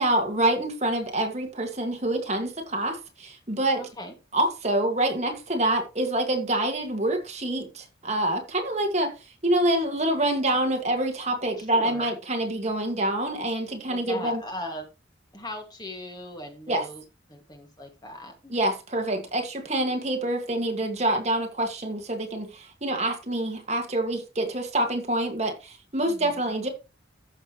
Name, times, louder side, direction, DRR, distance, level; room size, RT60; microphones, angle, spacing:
voice 1, 0.0-3.8 4.3-9.1 9.4-14.4 16.7-16.8 18.5-26.7, right 1 dB, 35° right, 2.0 m, -26 dB
voice 2, 3.8-4.1 11.6-12.1 13.9-14.9 15.3-17.0 17.3-18.6 26.0-26.4, left 1 dB, 20° left, 2.1 m, -39 dB
14.5 x 6.7 x 3.1 m
head